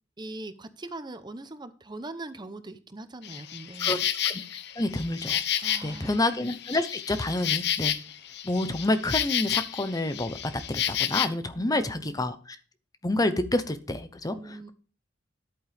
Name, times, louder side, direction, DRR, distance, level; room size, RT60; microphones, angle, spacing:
voice 1, 0.2-4.1 5.6-6.2 11.5-12.3 14.3-14.7, right 2 dB, 25° right, 11 dB, 0.8 m, -41 dB
Insect, 3.2-11.3, left 11 dB, 60° left, 0.8 m, -30 dB
voice 2, 4.8-5.4 5.8-7.9 8.4-10.4 10.7-12.6 13.0-14.7, left 2 dB, 20° left, 11 dB, 0.8 m, -28 dB
11.0 x 8.6 x 3.5 m, 0.38 s
head